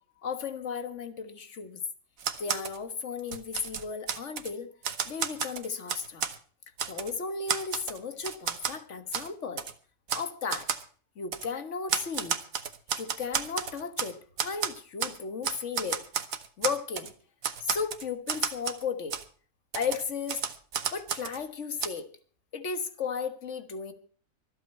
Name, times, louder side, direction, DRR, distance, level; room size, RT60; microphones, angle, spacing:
voice 1, 0.2-1.8 2.4-4.7 5.1-6.2 6.9-9.6 10.1-10.7 11.2-12.4 12.9-16.0 16.6-17.1 17.6-19.1 19.8-20.4 20.9-22.1 22.5-23.9, left 5 dB, 55° left, 9 dB, 1.8 m, -35 dB
Typewriter, 2.2-2.8 3.2-4.5 4.8-6.4 6.8-7.1 7.5-8.8 9.1-9.3 9.6-9.7 10.1-10.3 10.5-10.8 11.3-11.5 11.9-14.1 14.4-15.2 15.4-17.1 17.4-18.8 19.1-19.2 19.7-21.4 21.8-21.9, right 7 dB, 75° right, 1.6 m, -32 dB
25.0 x 8.4 x 4.4 m, 0.43 s
omnidirectional pair, 1.5 m